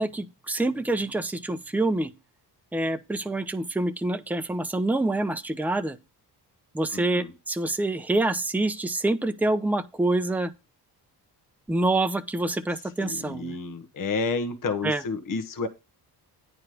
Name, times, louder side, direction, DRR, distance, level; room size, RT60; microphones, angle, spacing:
voice 1, 0.0-2.1 2.7-6.0 6.7-10.5 11.7-13.6 14.8-15.0, right 2 dB, 5° right, 0.7 m, -26 dB
voice 2, 6.9-7.3 13.0-15.7, left 4 dB, 55° left, 1.3 m, -30 dB
9.4 x 4.8 x 5.0 m
cardioid pair, 100°, 40 cm